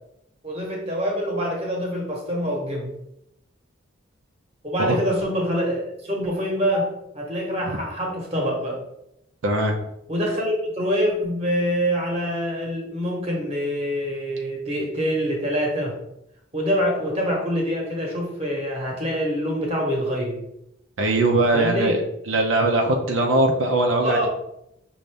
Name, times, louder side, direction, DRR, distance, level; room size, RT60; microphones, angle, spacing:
voice 1, 0.4-2.9 4.6-6.9 7.1-8.8 10.1-16.0 16.5-20.4 21.5-21.9 24.0-24.3, equal, 30° right, -1 dB, 1.1 m, -25 dB
voice 2, 9.4-9.8 21.0-22.0 22.3-24.3, right 2 dB, 85° right, 1 dB, 0.6 m, -20 dB
5.4 x 2.6 x 3.3 m, 0.82 s
head